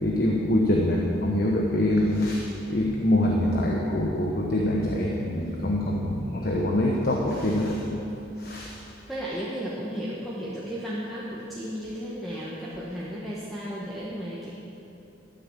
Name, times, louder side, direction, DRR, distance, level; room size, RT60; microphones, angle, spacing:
voice 1, 0.0-7.8 8.4-8.7, left 1 dB, 50° left, -1 dB, 1.3 m, -24 dB
voice 2, 6.0-6.4 9.1-14.5, equal, ahead, -8 dB, 1.7 m, -34 dB
13.5 x 9.6 x 7.5 m, 2.8 s
head